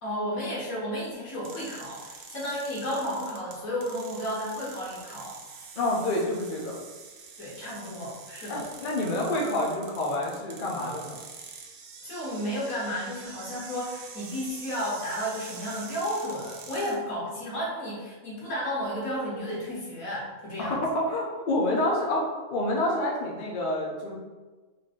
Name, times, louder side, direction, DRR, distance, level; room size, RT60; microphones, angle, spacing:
voice 1, 0.0-5.4 7.4-8.7 12.0-20.8, equal, 70° left, -6 dB, 1.7 m, -33 dB
sound 1, 1.4-17.0, right 5 dB, 80° right, 1.1 m, -45 dB
voice 2, 5.8-6.8 8.5-11.2 20.6-24.2, left 1 dB, 45° left, -3 dB, 0.7 m, -28 dB
3.9 x 2.7 x 3.6 m, 1.3 s
omnidirectional pair, 1.5 m